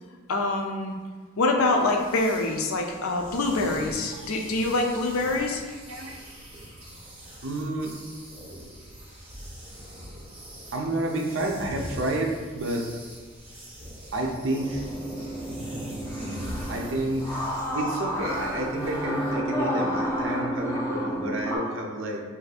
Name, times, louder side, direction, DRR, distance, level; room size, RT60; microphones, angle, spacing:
voice 1, 0.3-1.0 1.4-5.6, left 2 dB, 90° left, 2 dB, 0.5 m, -25 dB
sound 1, 1.8-19.3, equal, 25° right, 1.2 m, -42 dB
voice 2, 7.4-7.9 10.7-12.9 14.1-14.8 16.7-17.4 17.7-22.2, right 1 dB, 65° right, 1 dB, 0.5 m, -30 dB
sound 2, 14.5-21.6, equal, 15° left, 0.4 m, -31 dB
2.6 x 2.6 x 4.0 m, 1.5 s
head